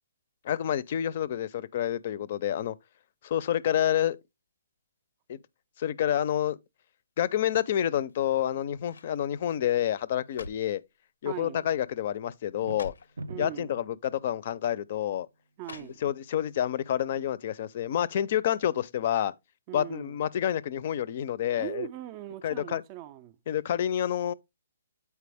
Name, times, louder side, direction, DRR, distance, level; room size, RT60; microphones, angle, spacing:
voice 1, 0.4-2.7 3.2-4.2 5.3-5.4 5.8-6.6 7.2-10.8 11.2-12.9 13.4-15.3 15.8-19.3 19.7-21.9 22.4-22.8 23.5-24.3, left 10 dB, 40° left, 0.5 m, -28 dB
sound 1, 8.0-8.4 8.9-9.2 10.0-10.8 11.6-11.9 12.2-12.3 12.6-13.2 14.1-14.3 15.6-16.4 16.8-16.9, left 4 dB, 85° left, 0.7 m, -46 dB
voice 2, 11.2-11.7 13.3-13.8 15.6-16.0 19.7-20.2 21.6-23.4, right 14 dB, 25° right, 0.4 m, -40 dB
sound 2, 12.5-13.8, right 2 dB, 90° right, 0.6 m, -40 dB
8.3 x 4.6 x 3.4 m
hypercardioid pair, 160°, 0 cm